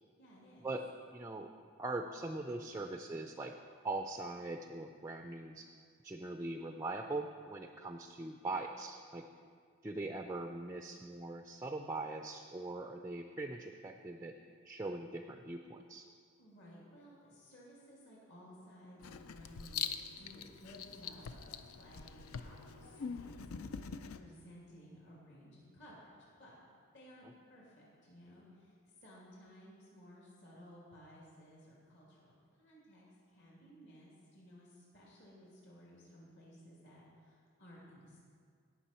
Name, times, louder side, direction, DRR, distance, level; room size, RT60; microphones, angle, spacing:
voice 1, 0.2-0.7 16.4-26.1 26.4-26.6 26.9-28.7 29.0-38.2, equal, 55° left, -5 dB, 2.7 m, -57 dB
voice 2, 1.1-1.5 1.8-3.5 3.8-5.7 6.0-9.2 9.8-14.4 14.6-16.1, right 2 dB, 15° right, 5 dB, 0.3 m, -41 dB
Writing, 19.0-24.2, left 7 dB, 75° left, 0.5 m, -44 dB
17.5 x 6.1 x 4.4 m, 2.1 s
head